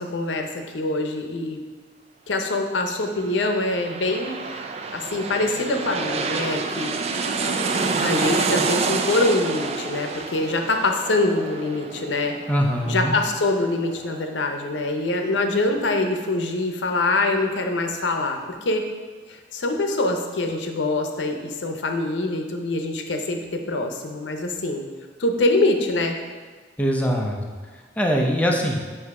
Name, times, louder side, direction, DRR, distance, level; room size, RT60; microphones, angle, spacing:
voice 1, 0.0-1.6 2.3-4.6 4.9-7.0 8.0-12.4 12.9-18.8 19.3-24.8 25.2-26.2, left 2 dB, 80° left, 4 dB, 0.7 m, -24 dB
sound 1, 3.4-14.7 15.1-15.2, right 4 dB, 35° right, 0.3 m, -28 dB
voice 2, 12.5-13.1 26.8-27.4 28.0-28.8, equal, 10° left, 0 dB, 0.6 m, -22 dB
8.1 x 2.7 x 4.7 m, 1.5 s
head